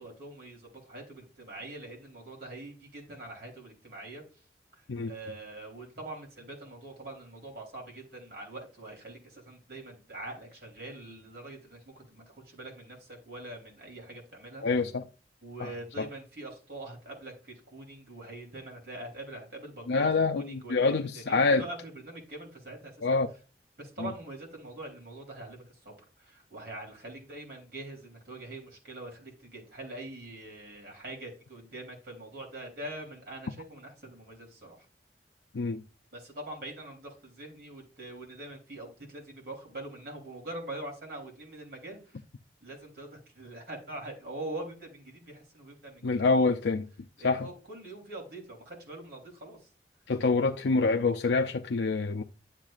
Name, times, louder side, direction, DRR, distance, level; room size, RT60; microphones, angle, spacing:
voice 1, 0.0-4.2 5.0-14.7 15.4-20.1 20.3-23.2 23.8-34.8 36.1-42.1 42.6-46.5 47.2-49.6, right 2 dB, 60° right, 3.4 m, -43 dB
voice 2, 14.6-15.0 15.6-15.7 16.0-16.1 19.9-21.6 23.0-23.3 24.0-24.1 35.5-35.8 46.0-46.8 47.2-47.5 50.1-52.2, left 4 dB, 90° left, 0.5 m, -26 dB
10.5 x 7.3 x 2.5 m
head